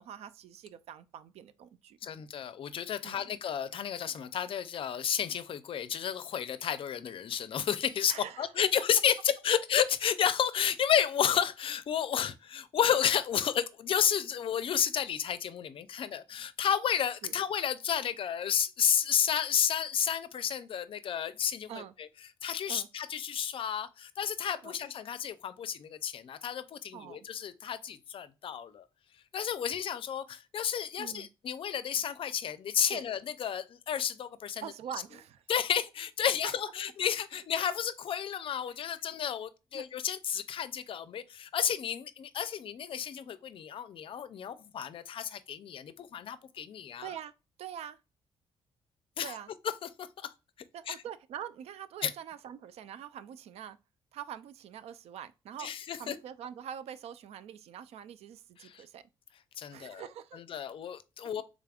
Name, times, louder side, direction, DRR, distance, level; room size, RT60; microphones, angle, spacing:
voice 1, 0.0-2.0 3.0-3.3 8.1-8.7 17.2-17.3 21.7-21.9 22.7-22.9 24.6-24.7 26.9-27.3 31.0-31.3 32.9-33.0 34.6-35.4 36.4-36.5 39.7-39.9 47.0-47.3 47.6-48.0 49.2-49.5 50.7-53.8 54.1-55.7 56.0-59.0 59.7-60.4, right 9 dB, 80° right, 0.4 m, -44 dB
voice 2, 2.0-22.1 22.4-28.9 29.3-34.6 35.5-47.1 49.2-49.3 50.0-50.3 50.9-51.0 52.0-52.1 55.6-56.1 58.6-58.8 59.6-60.0 60.3-61.4, left 8 dB, 60° left, 0.4 m, -31 dB
3.6 x 3.4 x 2.4 m
cardioid pair, 75°, 11 cm